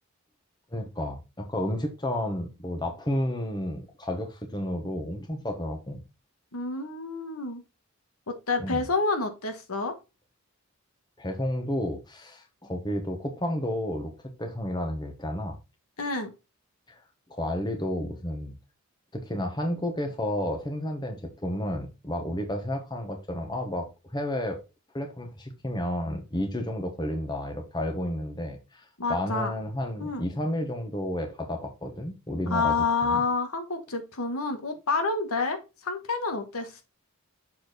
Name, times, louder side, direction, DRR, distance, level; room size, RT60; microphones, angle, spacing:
voice 1, 0.7-6.0 8.6-8.8 11.2-14.1 14.4-15.6 16.9-17.0 17.3-18.6 19.1-24.6 24.9-32.8 33.0-33.2, left 1 dB, 20° left, 1.2 m, -31 dB
voice 2, 6.5-7.6 8.3-9.9 16.0-16.3 29.0-29.5 30.0-30.2 32.5-35.6 35.8-36.8, left 4 dB, 80° left, 1.4 m, -28 dB
6.8 x 4.3 x 4.0 m
head